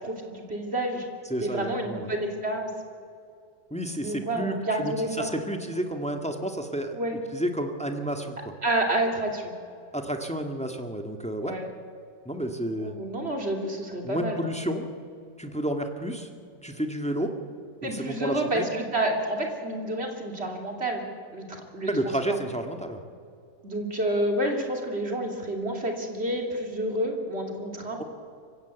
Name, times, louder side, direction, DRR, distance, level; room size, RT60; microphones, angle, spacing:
voice 1, 0.0-1.1 1.4-2.7 4.0-5.3 6.9-7.2 8.6-9.5 11.4-11.7 12.8-14.5 17.8-21.0 21.3-21.5 21.7-21.9 22.3-22.4 23.6-28.0, right 1 dB, 35° right, 2 dB, 3.1 m, -29 dB
voice 2, 1.3-2.1 3.7-7.0 7.3-8.5 9.9-11.6 12.2-13.0 14.0-14.9 15.4-16.3 16.6-17.3 17.9-18.7 21.9-23.0, right 1 dB, 5° left, 4 dB, 1.5 m, -31 dB
25.0 x 16.0 x 8.1 m, 2.4 s
omnidirectional pair, 1.8 m